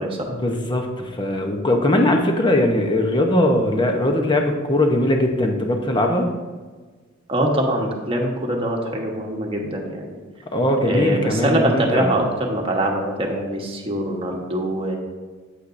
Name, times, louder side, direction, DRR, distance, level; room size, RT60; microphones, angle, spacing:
voice 1, 0.3-6.3 10.5-12.1, left 1 dB, 20° left, 3 dB, 0.9 m, -20 dB
voice 2, 7.3-10.2 10.8-15.0, right 1 dB, 25° right, 0 dB, 1.2 m, -23 dB
8.7 x 8.1 x 2.6 m, 1.4 s
head